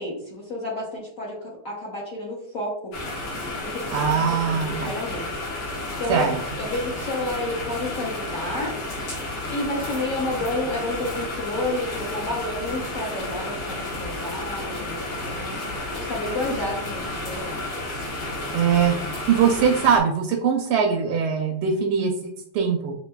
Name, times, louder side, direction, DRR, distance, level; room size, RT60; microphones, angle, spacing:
voice 1, 0.0-2.9 3.6-3.9 4.3-5.4 6.0-6.2 6.6-8.7 9.5-17.7, left 1 dB, 55° left, -4 dB, 0.9 m, -30 dB
sound 1, 2.9-20.0, left 2 dB, 80° left, 2.2 m, -32 dB
voice 2, 3.9-4.9 6.1-6.4 18.5-22.9, right 6 dB, 85° right, 1 dB, 1.5 m, -22 dB
6.3 x 2.6 x 2.2 m, 0.67 s
omnidirectional pair, 2.4 m